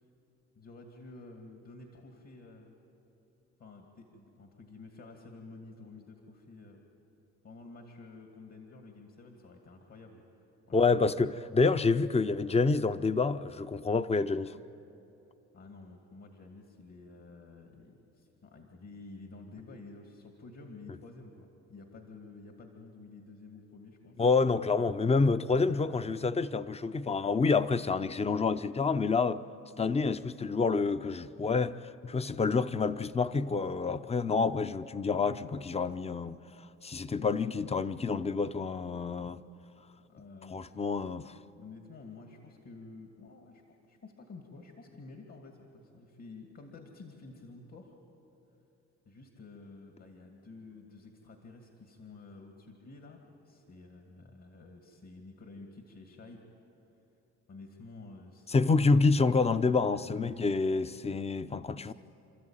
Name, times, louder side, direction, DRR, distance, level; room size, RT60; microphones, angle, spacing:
voice 1, 0.6-2.8 3.6-6.8 7.4-10.2 10.7-11.4 15.5-24.2 25.5-26.1 40.1-40.8 41.3-43.6 43.9-47.9 49.1-53.2 53.4-56.4 57.5-58.9 59.9-60.4 61.8-61.9, left 3 dB, 55° left, 2.4 m, -51 dB
voice 2, 10.7-14.6 24.2-29.4 29.8-31.8 32.0-36.4 36.8-39.4 40.5-41.3 58.5-61.9, left 4 dB, 20° left, 0.7 m, -28 dB
29.0 x 13.5 x 9.0 m
cardioid pair, 90°, 30 cm